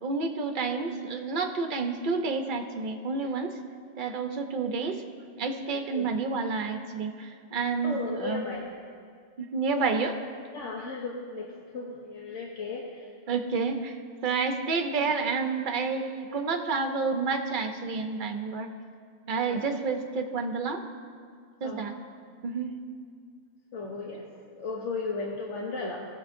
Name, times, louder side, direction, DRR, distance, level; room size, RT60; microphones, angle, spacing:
voice 1, 0.0-3.5 4.0-5.0 5.4-8.4 9.4-10.2 13.3-18.7 19.3-20.8 21.6-21.9 22.4-22.7, right 4 dB, 50° right, 5 dB, 0.8 m, -29 dB
voice 2, 7.8-8.6 10.5-13.1 19.5-19.6 21.6-21.8 23.7-24.2 24.6-26.0, left 3 dB, 85° left, -1 dB, 1.2 m, -35 dB
17.5 x 7.0 x 2.6 m, 2.2 s
omnidirectional pair, 1.2 m